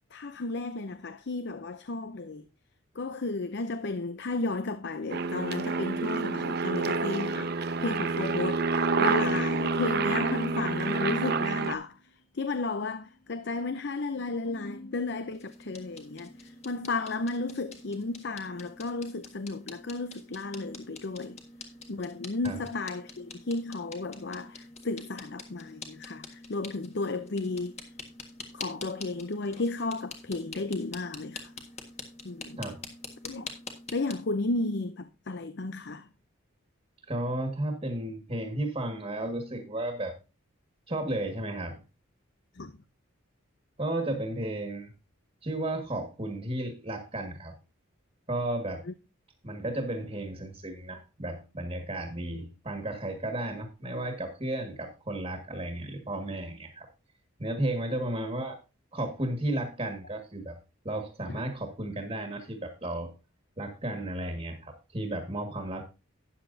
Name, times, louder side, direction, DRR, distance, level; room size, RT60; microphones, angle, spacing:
voice 1, 0.1-2.4 2.9-8.7 9.0-12.0 12.3-21.4 21.9-27.9 28.5-31.5 32.2-32.7 33.2-33.5 33.9-36.1 42.5-42.8 48.8-48.9 61.3-61.4, left 3 dB, 50° left, 0.6 m, -33 dB
Aircraft, 5.1-11.7, right 4 dB, 50° right, 0.7 m, -28 dB
Bowed string instrument, 12.7-13.5 14.4-17.0, left 1 dB, 80° left, 5.3 m, -51 dB
sound 1, 15.3-34.1, left 3 dB, 30° left, 1.7 m, -46 dB
voice 2, 37.1-40.1 40.9-41.8 43.8-44.9 45.4-47.5 48.3-48.8 49.4-56.9 57.4-58.6 58.9-60.6 60.8-63.1 63.6-65.8, right 1 dB, 30° right, 1.8 m, -33 dB
12.5 x 9.9 x 2.7 m
head